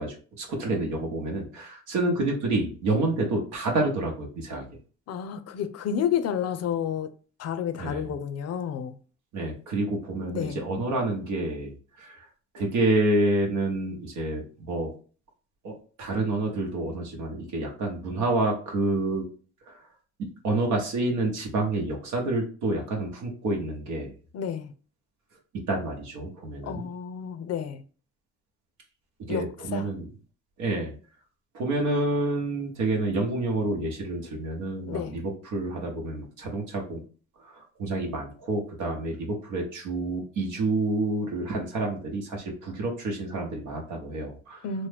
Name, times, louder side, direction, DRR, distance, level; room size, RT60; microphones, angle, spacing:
voice 1, 0.0-4.7 7.8-8.1 9.3-12.2 12.5-14.9 15.6-15.7 16.0-19.2 19.7-19.8 20.4-24.1 25.7-26.9 29.2-30.1 30.6-30.9 31.5-37.0 37.5-44.6, right 2 dB, 85° right, 0.9 m, -28 dB
voice 2, 5.1-7.1 7.4-8.9 10.3-10.7 24.3-24.7 26.6-27.8 29.3-29.5 29.7-29.9 34.9-35.2 44.6-44.9, left 8 dB, 55° left, 0.5 m, -30 dB
3.0 x 2.1 x 3.3 m
cardioid pair, 90°, 30 cm